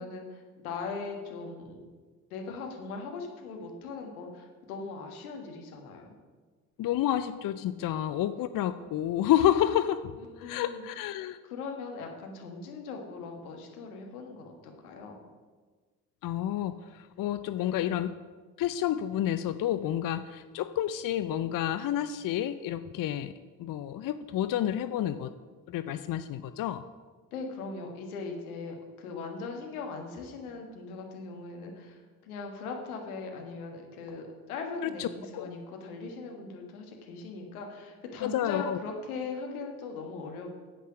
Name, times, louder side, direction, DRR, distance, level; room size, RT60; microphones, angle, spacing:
voice 1, 0.0-1.9 2.3-6.1 10.2-10.8 11.4-15.2 17.6-17.9 27.3-40.5, left 4 dB, 85° left, 2 dB, 1.5 m, -40 dB
voice 2, 6.8-11.4 16.2-18.1 18.6-23.3 23.6-25.3 25.7-26.8 34.8-35.1 35.3-35.5 38.2-38.8, left 11 dB, 50° left, 12 dB, 0.6 m, -29 dB
9.7 x 8.4 x 6.0 m, 1.4 s
figure-of-eight pair, 40°, 43 cm